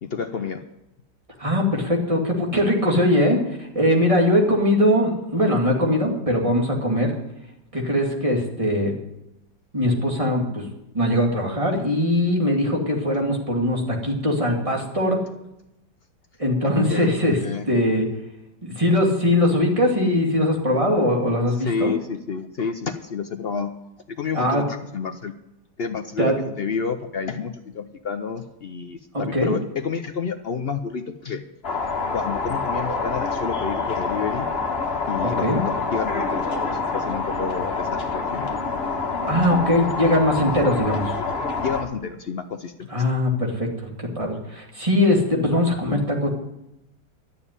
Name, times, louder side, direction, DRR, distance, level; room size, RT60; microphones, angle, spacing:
voice 1, 0.0-0.6 16.9-17.1 17.4-17.8 21.5-23.7 24.1-25.3 25.8-31.4 32.1-34.5 35.1-38.5 41.6-43.0, left 5 dB, 75° left, 8 dB, 0.5 m, -30 dB
voice 2, 1.4-7.1 7.7-8.9 9.7-10.7 10.9-15.2 16.4-17.4 17.7-18.1 18.6-21.9 24.3-24.6 26.2-26.4 29.3-29.5 35.2-35.6 39.2-41.1 42.9-43.7 44.0-46.3, left 1 dB, 20° right, -1 dB, 2.4 m, -21 dB
sound 1, 31.6-41.8, left 4 dB, 35° left, 1.5 m, -26 dB
12.5 x 7.2 x 9.8 m, 0.88 s
omnidirectional pair, 1.9 m